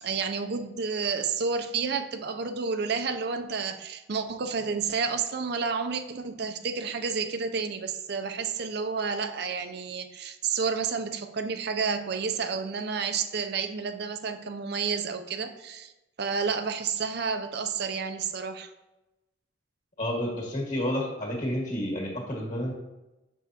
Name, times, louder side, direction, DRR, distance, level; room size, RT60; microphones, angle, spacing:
voice 1, 0.0-15.9 16.2-18.7, right 5 dB, 60° right, 8 dB, 0.5 m, -30 dB
voice 2, 20.0-22.7, equal, 45° left, -2 dB, 1.7 m, -30 dB
7.0 x 6.0 x 2.9 m, 1.0 s
head